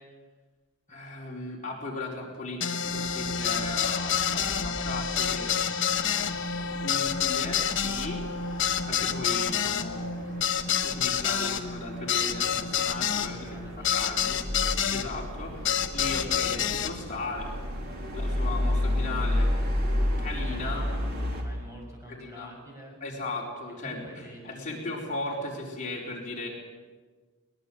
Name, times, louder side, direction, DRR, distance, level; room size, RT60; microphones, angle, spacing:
voice 1, 0.9-5.5 6.8-8.5 8.9-10.2 10.8-14.4 14.9-15.6 15.9-17.5 18.1-19.5 20.2-20.9 22.1-22.5 23.0-26.5, left 2 dB, 35° left, -3 dB, 4.5 m, -37 dB
sound 1, 2.6-15.1 15.7-16.9, left 8 dB, 55° left, 1.3 m, -28 dB
sound 2, 2.8-21.4, left 1 dB, 45° right, 3.5 m, -33 dB
voice 2, 13.2-14.8 15.3-15.7 20.5-21.1 21.4-23.0 23.8-24.8 25.3-25.8, equal, 15° right, -1 dB, 7.1 m, -48 dB
22.0 x 21.0 x 7.8 m, 1.4 s
head